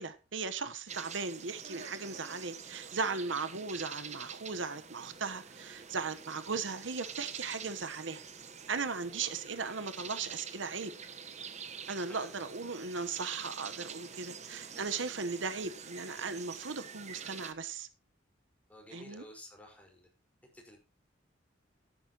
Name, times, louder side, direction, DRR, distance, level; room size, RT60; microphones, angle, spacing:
voice 1, 0.0-8.2 8.7-10.9 11.9-17.9 18.9-19.2, right 4 dB, 85° right, 1.1 m, -37 dB
sound 1, 0.9-17.5, right 6 dB, 40° right, 1.1 m, -46 dB
voice 2, 12.1-12.4 18.7-20.1 20.5-20.8, left 1 dB, 10° left, 4.7 m, -52 dB
12.0 x 11.5 x 3.0 m
head